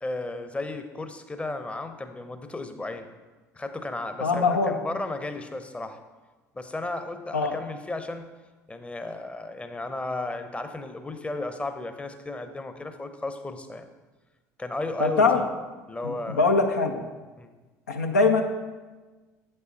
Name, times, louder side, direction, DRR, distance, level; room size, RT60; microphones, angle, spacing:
voice 1, 0.0-3.1 3.5-6.0 6.5-8.3 8.7-13.9 14.6-15.5 15.9-16.4 17.4-17.5, left 2 dB, 15° left, 8 dB, 0.7 m, -34 dB
voice 2, 4.2-4.8 7.3-7.6 15.0-15.4 16.0-17.0 17.9-18.4, left 4 dB, 85° left, 4 dB, 0.5 m, -22 dB
7.8 x 5.5 x 4.0 m, 1.3 s
figure-of-eight pair, 60°, 9 cm